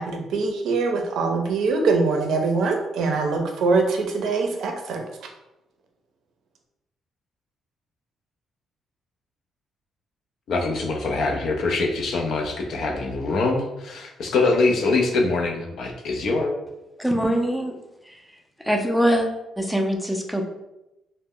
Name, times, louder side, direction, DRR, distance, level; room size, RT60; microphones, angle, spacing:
voice 1, 0.0-5.0, right 4 dB, 75° right, 3 dB, 0.5 m, -23 dB
voice 2, 10.5-16.5, left 3 dB, 70° left, 3 dB, 0.4 m, -23 dB
voice 3, 17.0-17.8 18.1-18.2 18.6-19.3 19.6-20.5, equal, ahead, 1 dB, 0.4 m, -23 dB
2.0 x 2.0 x 3.6 m, 0.93 s
cardioid pair, 90°, 0 cm